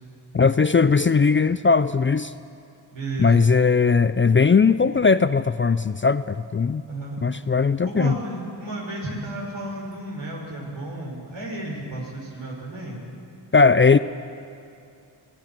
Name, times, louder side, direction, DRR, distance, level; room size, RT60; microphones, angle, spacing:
voice 1, 0.3-2.3 3.2-6.8 7.2-8.2 13.5-14.0, left 5 dB, 25° left, 13 dB, 0.5 m, -18 dB
voice 2, 2.9-3.4 6.9-7.2 7.8-13.0, right 2 dB, 70° right, -3 dB, 6.5 m, -33 dB
26.0 x 16.5 x 6.1 m, 2.5 s
cardioid pair, 50°, 48 cm